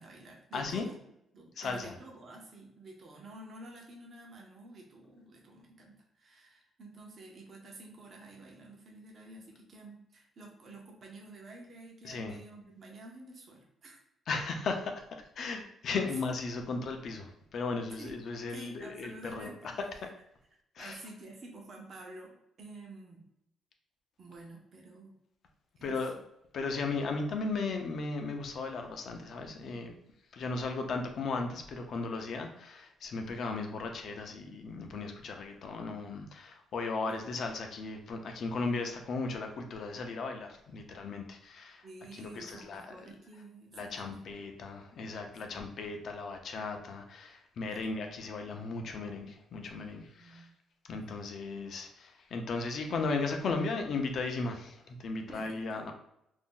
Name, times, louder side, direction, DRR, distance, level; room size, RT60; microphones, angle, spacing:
voice 1, 0.0-14.0 18.0-18.2 18.5-20.1 20.8-23.2 24.2-25.2 25.8-26.0 33.2-33.3 37.1-37.3 41.8-44.4 47.7-47.8 50.1-50.5 51.0-51.1 55.3-55.9, right 2 dB, 45° right, 0 dB, 0.7 m, -50 dB
voice 2, 0.5-0.9 1.6-2.0 12.0-12.4 14.3-15.0 15.4-19.5 20.8-21.0 25.8-26.2 26.5-29.9 30.3-41.8 42.2-43.0 43.7-50.5 50.9-55.9, left 3 dB, 55° left, 4 dB, 0.5 m, -36 dB
2.6 x 2.0 x 3.7 m, 0.79 s
cardioid pair, 110°, 0 cm